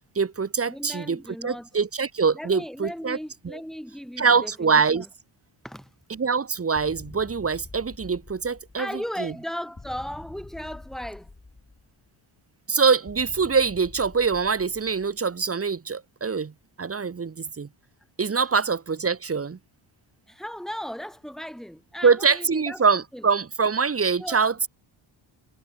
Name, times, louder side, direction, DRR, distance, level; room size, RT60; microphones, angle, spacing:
voice 1, 0.1-3.2 3.4-3.6 4.2-5.0 6.1-8.9 9.2-9.3 12.7-16.5 16.8-17.7 18.2-19.6 22.0-24.7, right 5 dB, 30° right, 1.6 m, -24 dB
voice 2, 0.7-1.7 2.3-5.0 5.6-5.9 8.8-11.3 20.3-22.8 23.1-23.2 24.2-24.5, equal, ahead, 7.9 m, -36 dB
sound 1, 6.7-9.0 9.8-12.1 13.1-15.3, left 3 dB, 15° left, 4.1 m, -46 dB
wide cardioid pair, 140°, 49 cm